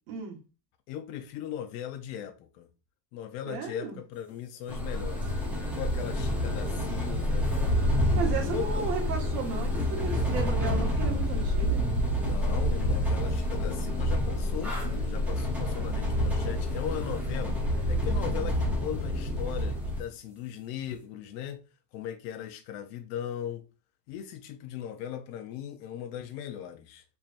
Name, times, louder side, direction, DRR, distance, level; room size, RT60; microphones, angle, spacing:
voice 1, 0.1-0.4 3.5-4.0 8.1-11.8, right 6 dB, 50° right, 1.4 m, -34 dB
voice 2, 0.9-2.7 3.1-5.3 5.7-7.5 8.0-8.9 12.2-17.6 17.9-21.6 21.9-23.6 24.1-27.0, left 10 dB, 70° left, 0.6 m, -38 dB
sound 1, 4.7-20.0, left 1 dB, 5° right, 0.7 m, -28 dB
4.4 x 3.4 x 2.5 m
cardioid pair, 180°, 46 cm